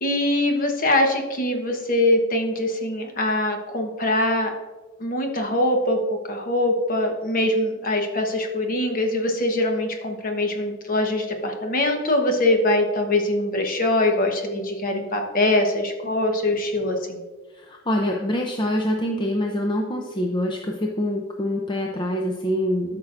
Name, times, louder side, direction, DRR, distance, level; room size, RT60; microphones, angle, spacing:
voice 1, 0.0-4.5 5.0-6.0 6.2-17.2, left 1 dB, 45° left, 3 dB, 1.1 m, -23 dB
voice 2, 17.5-23.0, left 1 dB, 20° left, 0 dB, 0.5 m, -25 dB
13.0 x 5.9 x 2.5 m, 1.3 s
head